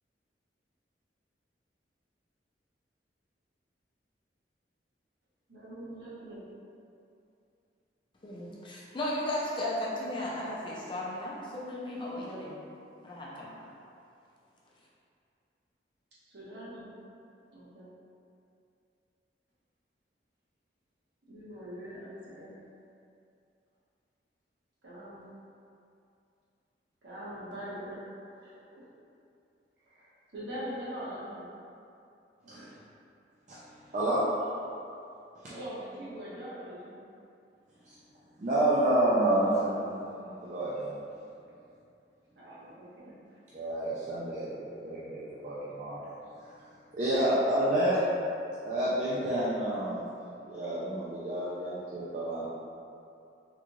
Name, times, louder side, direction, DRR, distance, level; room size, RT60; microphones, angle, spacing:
voice 1, 5.5-6.4 16.2-16.9 17.5-17.9 21.3-22.6 24.8-25.2 27.0-28.0 28.3-28.9 29.8-31.5 32.4-32.7 35.5-37.0 42.3-43.2, equal, 75° right, -10 dB, 1.2 m, -43 dB
voice 2, 8.2-12.6 13.0-13.7, left 1 dB, 30° left, -5 dB, 0.5 m, -35 dB
voice 3, 33.5-34.2 37.9-38.0 38.4-41.0 43.5-46.1 46.9-48.0 48.6-50.0 50.4-52.5, right 1 dB, 45° right, -9 dB, 0.4 m, -29 dB
3.6 x 2.3 x 3.0 m, 2.6 s
head